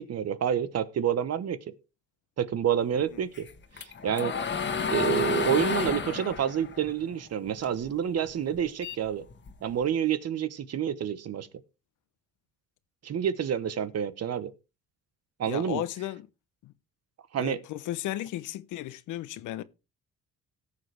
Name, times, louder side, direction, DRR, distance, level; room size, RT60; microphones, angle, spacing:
voice 1, 0.0-1.6 2.4-3.5 4.0-4.3 4.9-9.3 9.6-11.5 13.0-14.5 15.4-15.8 17.3-17.6, right 9 dB, 55° right, 1.1 m, -28 dB
sound 1, 3.3-7.9 8.2-9.8, left 6 dB, 40° left, 1.5 m, -31 dB
voice 2, 15.5-16.3 16.6-16.7 17.4-19.6, left 14 dB, 85° left, 0.8 m, -35 dB
17.0 x 6.8 x 3.4 m
cardioid pair, 90°, 30 cm